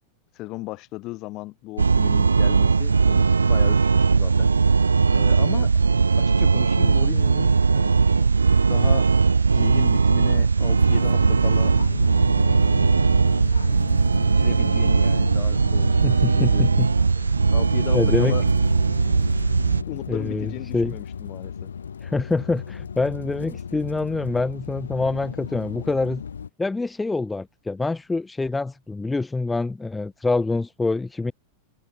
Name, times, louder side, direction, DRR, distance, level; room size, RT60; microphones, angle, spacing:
voice 1, 0.3-4.5 5.1-5.7 6.2-8.3 8.7-9.1 9.5-11.7 12.3-13.1 14.2-16.7 17.5-18.4 19.9-21.7, left 20 dB, 40° left, 1.9 m, -36 dB
sound 1, 1.8-19.8, right 4 dB, 75° right, 0.3 m, -19 dB
sound 2, 10.8-26.5, left 7 dB, 70° left, 2.5 m, -34 dB
voice 2, 16.0-16.9 17.9-18.4 20.1-21.0 22.0-26.2 26.6-31.3, left 3 dB, 10° left, 0.4 m, -25 dB
figure-of-eight pair, 90°, 0 cm